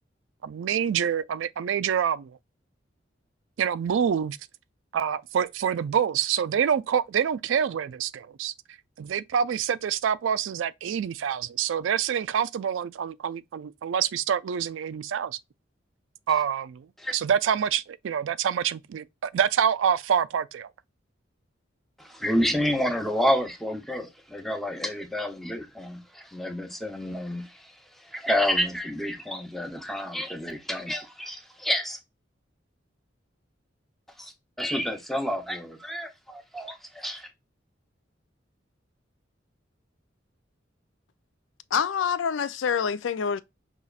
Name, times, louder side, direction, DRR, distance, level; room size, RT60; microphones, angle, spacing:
voice 1, 0.4-2.4 3.6-4.4 4.9-8.5 9.0-15.4 16.3-16.9 17.1-20.7, right 8 dB, 85° right, 0.3 m, -26 dB
voice 2, 22.0-27.7 28.0-32.0 34.2-34.3 34.6-37.3, equal, ahead, 0.7 m, -29 dB
voice 3, 41.7-43.4, left 7 dB, 80° left, 0.4 m, -26 dB
5.5 x 3.0 x 2.3 m
head